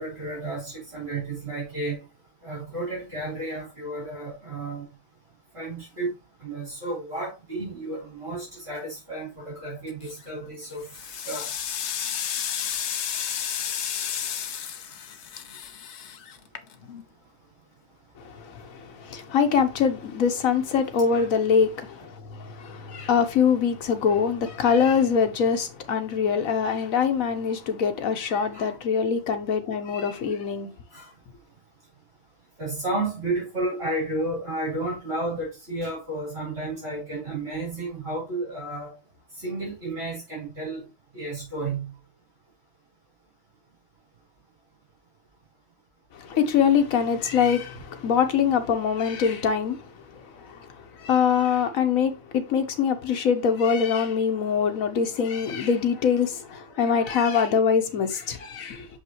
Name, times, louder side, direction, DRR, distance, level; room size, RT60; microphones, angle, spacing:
voice 1, 0.0-2.0 2.4-4.9 5.5-6.1 6.4-10.8 11.3-11.5 21.1-21.3 28.5-28.8 30.9-31.0 32.6-38.9 39.4-40.9 41.1-41.9, right 2 dB, 50° right, 4.1 m, -32 dB
sound 1, 9.9-10.3 10.7-17.0, left 8 dB, 60° left, 0.9 m, -32 dB
voice 2, 18.2-30.7 46.1-58.9, left 6 dB, 85° left, 1.4 m, -24 dB
6.6 x 5.3 x 3.1 m
omnidirectional pair, 1.4 m